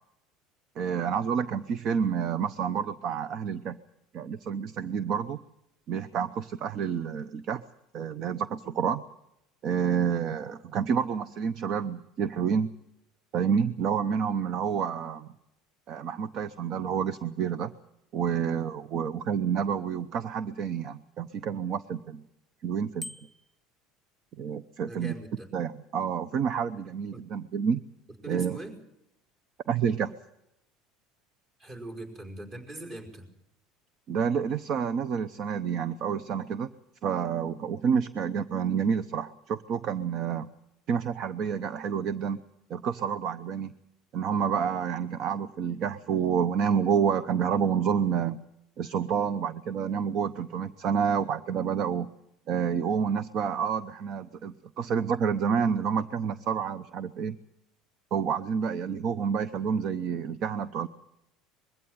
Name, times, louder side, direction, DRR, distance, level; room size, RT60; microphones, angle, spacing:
voice 1, 0.8-3.8 4.1-5.4 5.9-7.6 7.9-9.0 9.6-12.7 13.3-15.3 15.9-17.7 18.1-22.2 22.6-23.1 24.4-25.1 25.5-27.8 28.3-28.6 29.7-30.1 34.1-36.7 37.0-40.5 40.9-42.4 42.7-43.7 44.1-48.4 48.8-52.1 52.5-57.4 58.1-60.9, right 7 dB, 55° right, 14 dB, 0.8 m, -29 dB
Bicycle bell, 23.0-23.6, left 1 dB, 15° left, 0.8 m, -42 dB
voice 2, 24.8-25.5 27.1-27.2 28.2-28.7 31.6-33.3, right 2 dB, 35° right, 3 dB, 5.1 m, -41 dB
21.5 x 15.5 x 9.5 m, 0.86 s
supercardioid pair, 105°, 0 cm